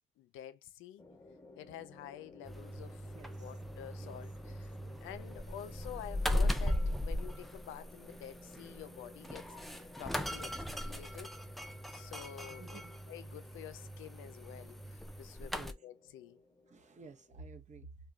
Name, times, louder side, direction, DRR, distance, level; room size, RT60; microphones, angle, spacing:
voice 1, 0.2-1.0 1.6-4.7 5.0-11.3 11.9-12.8 13.1-16.4, left 11 dB, 85° left, 0.4 m, -49 dB
sound 1, 1.0-17.5, left 1 dB, 15° left, 0.9 m, -57 dB
sound 2, 2.5-15.7, left 1 dB, ahead, 0.3 m, -38 dB
voice 2, 4.0-4.9 12.6-12.9 15.4-15.7 16.7-17.9, right 4 dB, 35° right, 0.7 m, -53 dB
3.2 x 2.1 x 2.4 m
cardioid pair, 90°, 20 cm